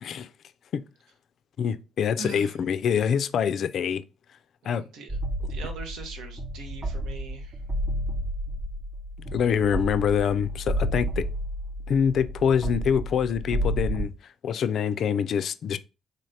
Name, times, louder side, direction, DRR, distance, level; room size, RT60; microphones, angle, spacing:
voice 1, 1.6-4.0 4.7-4.8 9.3-11.2 11.9-14.1 14.4-15.8, left 7 dB, 55° left, 0.3 m, -25 dB
voice 2, 2.2-2.6 4.6-5.2 5.5-7.6, right 5 dB, 85° right, 1.0 m, -41 dB
sound 1, 5.1-14.1, equal, 25° right, 0.5 m, -31 dB
4.0 x 3.2 x 2.7 m
cardioid pair, 150°, 0 cm